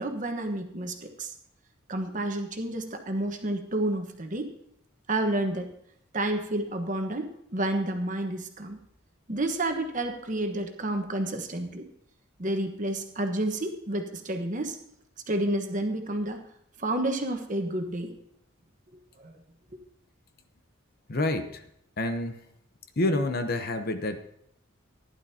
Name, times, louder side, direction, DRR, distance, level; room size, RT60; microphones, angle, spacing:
voice 1, 0.0-1.3 1.9-4.5 5.1-5.7 6.1-8.8 9.3-11.9 12.4-14.7 15.3-16.4 16.8-18.1 19.2-19.3, right 1 dB, 40° right, 5 dB, 1.2 m, -30 dB
voice 2, 21.1-21.6 22.0-22.4 23.0-24.2, left 2 dB, 50° left, 8 dB, 0.8 m, -28 dB
15.5 x 11.0 x 2.8 m, 0.73 s
head